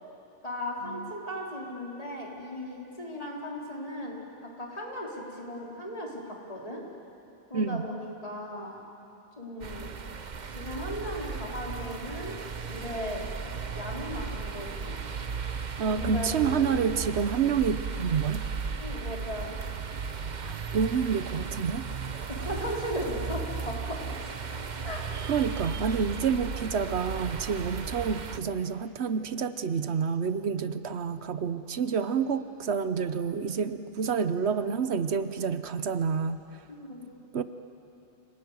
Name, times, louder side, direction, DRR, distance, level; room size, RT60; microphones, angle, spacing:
voice 1, 0.4-6.8 7.5-8.8 9.4-9.9 10.5-12.4 12.7-13.3 13.7-15.0 15.9-16.7 18.8-19.6 22.3-24.3 24.8-25.1 36.7-37.1, equal, 35° left, -3 dB, 4.1 m, -37 dB
voice 2, 7.5-7.9 15.8-18.5 20.3-21.8 25.3-36.4 37.3-37.4, right 6 dB, 85° right, 11 dB, 1.2 m, -28 dB
sound 1, 9.6-28.4, right 5 dB, 45° right, 0.9 m, -35 dB
27.0 x 19.0 x 9.6 m, 2.8 s
omnidirectional pair, 1.1 m